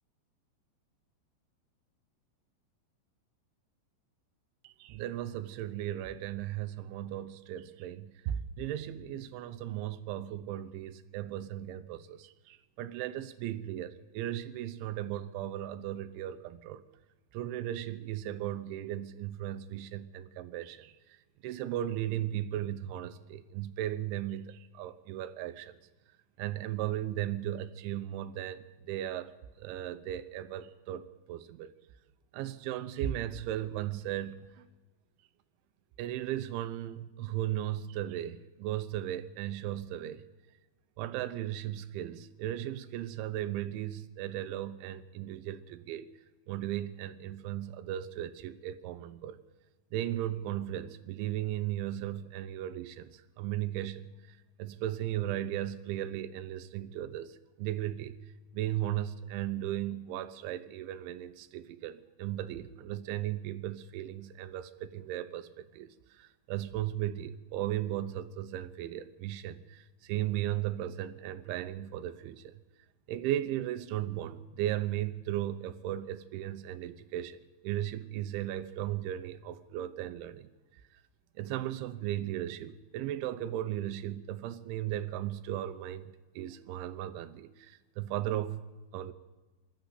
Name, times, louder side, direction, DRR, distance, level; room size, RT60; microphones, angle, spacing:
voice 1, 4.6-16.8 17.3-20.9 21.4-25.8 26.4-29.3 29.6-31.7 32.3-34.7 36.0-40.2 41.0-46.1 46.5-49.4 49.9-58.2 58.5-72.5 73.1-80.5 81.4-88.6 88.9-89.1, right 12 dB, 80° right, 3.1 m, -36 dB
25.5 x 13.0 x 8.0 m
omnidirectional pair, 5.6 m